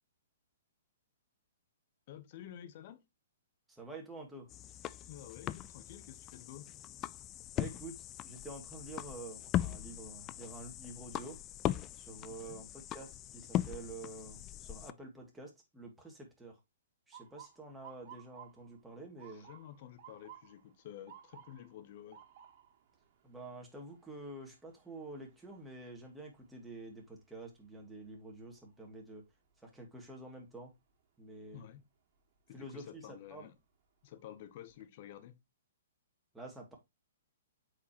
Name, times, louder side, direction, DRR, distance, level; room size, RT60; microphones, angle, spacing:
voice 1, 2.1-3.0 5.1-6.7 12.4-12.6 19.3-22.2 31.5-31.8 32.5-33.5 34.0-35.4, left 11 dB, 50° left, 1.0 m, -51 dB
voice 2, 3.7-4.5 7.5-11.4 11.9-16.6 17.1-19.5 23.2-29.3 29.6-30.7 31.2-31.7 32.5-33.5 36.3-36.8, right 2 dB, 5° right, 2.5 m, -48 dB
sound 1, 4.5-14.9, left 12 dB, 30° left, 0.4 m, -40 dB
Motor vehicle (road) / Siren, 17.1-29.0 29.5-29.9 30.7-31.0 32.9-33.1 33.6-33.7 34.1-34.8, right 9 dB, 45° right, 2.2 m, -59 dB
8.0 x 5.0 x 3.0 m
hypercardioid pair, 125°, 0 cm